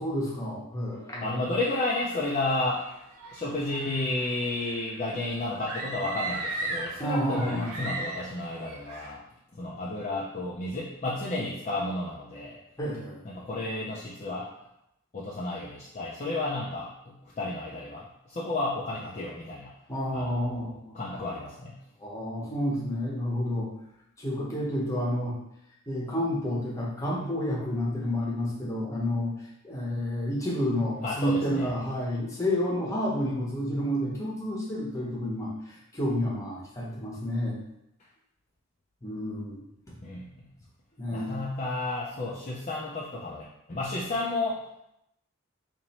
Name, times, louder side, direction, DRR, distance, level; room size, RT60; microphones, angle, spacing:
voice 1, 0.0-1.5 7.0-7.7 12.8-13.2 19.9-21.0 22.0-23.7 24.2-25.4 25.9-29.3 29.6-37.6 39.0-39.6 41.0-41.3, equal, 15° left, -5 dB, 0.8 m, -30 dB
voice 2, 1.2-2.8 3.3-9.2 9.5-12.6 13.3-14.5 15.1-19.7 20.1-21.8 31.0-31.7 40.0-40.5 41.1-44.8, left 2 dB, 30° left, -5 dB, 0.4 m, -32 dB
sound 1, 1.6-9.1, right 2 dB, 85° right, 0.6 m, -38 dB
3.0 x 2.5 x 4.1 m, 0.81 s
head